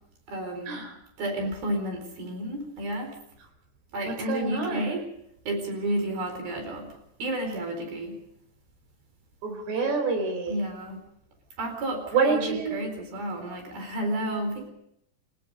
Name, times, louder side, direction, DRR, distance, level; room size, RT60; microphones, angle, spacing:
voice 1, 0.3-0.9 1.2-3.1 3.9-5.0 5.5-6.9 7.2-8.2 10.5-11.0 11.6-14.7, right 1 dB, 65° right, 4 dB, 6.1 m, -31 dB
voice 2, 4.1-4.9 9.4-10.6 12.1-12.8, right 4 dB, 85° right, 5 dB, 6.3 m, -27 dB
29.5 x 17.0 x 5.3 m, 0.77 s
omnidirectional pair, 4.7 m